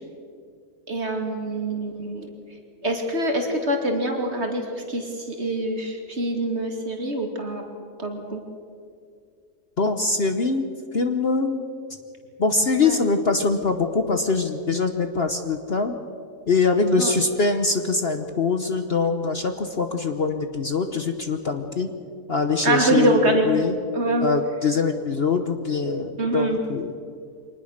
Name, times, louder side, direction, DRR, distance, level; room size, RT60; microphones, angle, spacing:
voice 1, 0.9-2.3 2.8-7.6 8.0-8.4 12.7-13.1 17.0-17.1 22.6-23.5 23.9-24.3 26.2-26.6, right 1 dB, 45° right, 2 dB, 2.9 m, -25 dB
voice 2, 9.8-10.7 10.9-11.7 12.4-15.9 16.5-21.9 22.3-23.8 24.2-26.9, left 4 dB, 45° left, 7 dB, 1.1 m, -23 dB
24.0 x 19.5 x 6.6 m, 2.4 s
omnidirectional pair, 1.7 m